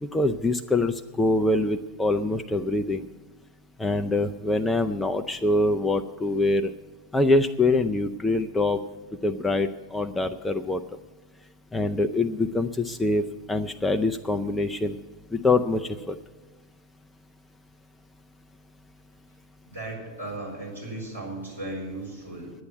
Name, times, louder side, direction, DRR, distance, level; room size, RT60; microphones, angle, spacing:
voice 1, 0.0-3.0 3.8-6.7 7.1-8.8 9.2-10.8 11.7-13.2 13.5-15.0 15.3-16.2, left 2 dB, 10° left, 6 dB, 0.4 m, -24 dB
voice 2, 19.6-22.5, right 2 dB, 85° right, -5 dB, 4.6 m, -36 dB
10.5 x 8.3 x 9.0 m, 1.3 s
figure-of-eight pair, 90°, 0 cm